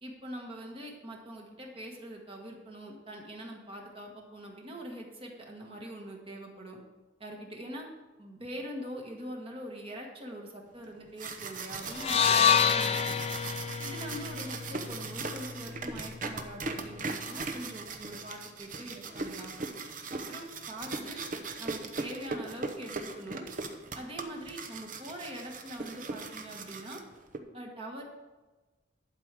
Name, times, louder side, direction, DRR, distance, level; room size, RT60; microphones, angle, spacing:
voice 1, 0.0-6.8 7.2-7.9 8.2-13.2 13.8-19.5 20.1-21.2 21.6-23.5 23.9-27.0 27.5-28.0, equal, 30° right, 0 dB, 1.4 m, -43 dB
sound 1, 10.9-27.4, right 3 dB, 45° right, 0.9 m, -39 dB
sound 2, 11.9-16.1, left 7 dB, 35° left, 0.4 m, -28 dB
11.5 x 4.7 x 7.5 m, 1.2 s
head